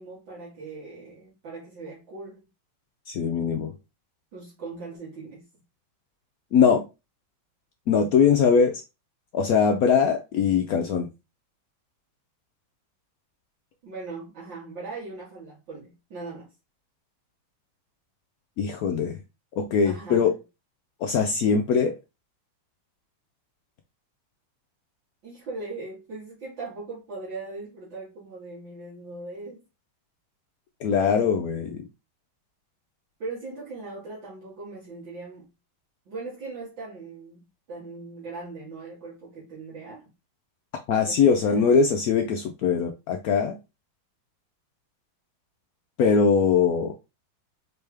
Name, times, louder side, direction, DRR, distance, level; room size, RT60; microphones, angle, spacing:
voice 1, 0.0-2.5 4.3-5.4 13.8-16.5 19.8-20.3 25.2-29.6 33.2-35.5 36.1-37.4 37.7-40.1 41.0-41.7, right 3 dB, 70° right, 2.5 m, -39 dB
voice 2, 3.1-3.7 6.5-6.8 7.9-8.8 9.3-11.1 18.6-19.2 19.6-20.3 21.0-21.9 30.8-31.8 40.9-43.6 46.0-46.9, left 6 dB, 85° left, 0.8 m, -21 dB
4.6 x 3.4 x 3.3 m
omnidirectional pair, 2.2 m